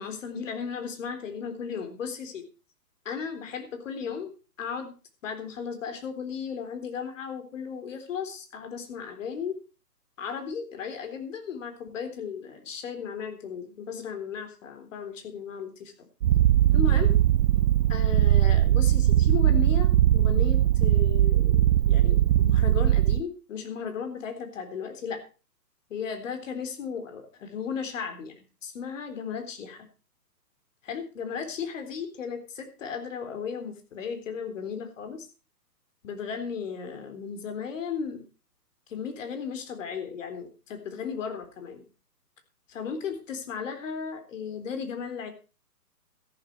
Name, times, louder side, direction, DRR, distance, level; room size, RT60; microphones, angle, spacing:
voice 1, 0.0-2.4 3.1-4.3 4.6-4.9 5.2-9.5 10.2-15.9 16.7-17.1 17.9-25.2 25.9-29.9 30.8-35.3 36.0-38.2 38.9-41.8 42.7-45.3, left 6 dB, 50° left, 7 dB, 3.8 m, -35 dB
Purr, 16.2-23.2, right 12 dB, 80° right, 0.6 m, -20 dB
13.5 x 12.0 x 4.5 m, 0.34 s
hypercardioid pair, 150°, 48 cm